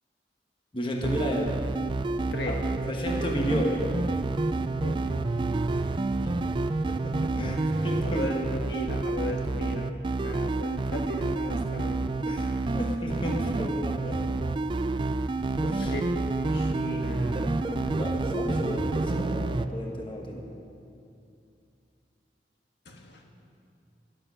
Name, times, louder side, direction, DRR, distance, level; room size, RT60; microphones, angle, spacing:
voice 1, 0.7-1.6 2.5-2.6 2.8-3.9 5.7-5.8 6.9-8.3 8.6-8.7 12.3-14.2 15.6-15.9 18.0-20.5, equal, 30° left, 0 dB, 1.3 m, -33 dB
sound 1, 1.0-19.7, right 2 dB, 30° right, 0.3 m, -28 dB
voice 2, 4.8-5.2 8.0-9.9 10.2-12.1 15.8-18.0 22.8-23.2, left 1 dB, 75° left, 2 dB, 1.4 m, -37 dB
13.0 x 11.0 x 5.6 m, 2.6 s
head